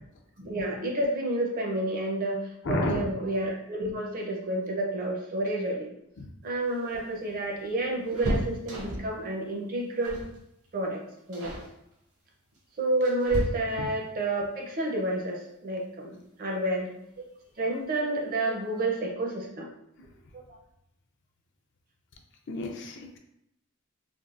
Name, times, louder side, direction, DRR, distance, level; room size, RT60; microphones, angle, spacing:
voice 1, 0.4-5.9 6.4-10.2 10.7-11.0 11.3-11.5 12.8-17.3 17.6-19.7 20.3-20.4, right 2 dB, 40° right, -1 dB, 0.5 m, -30 dB
voice 2, 2.6-3.0 6.2-6.3 13.8-13.9 22.5-23.2, left 2 dB, 55° left, 3 dB, 0.4 m, -31 dB
sound 1, 6.5-9.2 10.0-10.4 10.6-10.9 11.3-11.7 12.5-14.0 15.7-15.8 16.2-16.3 17.5-17.9 18.2-18.3 18.6-18.8, equal, 75° right, 0.8 m, -34 dB
3.4 x 2.2 x 2.4 m, 0.80 s
head